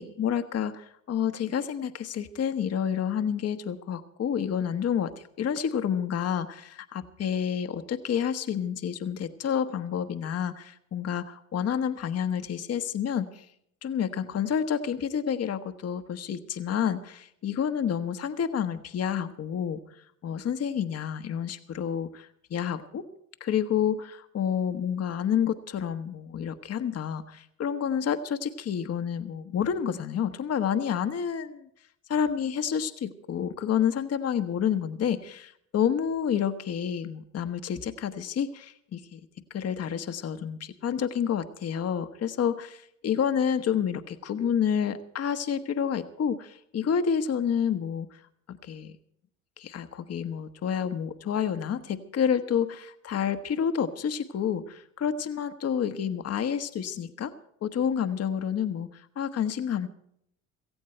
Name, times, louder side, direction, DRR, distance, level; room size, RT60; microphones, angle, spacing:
voice 1, 0.0-13.5 13.8-23.0 23.4-31.7 32.1-39.2 39.5-48.2 48.5-48.9 49.6-57.3 57.6-59.9, left 8 dB, 40° left, 9 dB, 1.1 m, -29 dB
17.0 x 15.5 x 4.4 m, 0.72 s
hypercardioid pair, 60°, 39 cm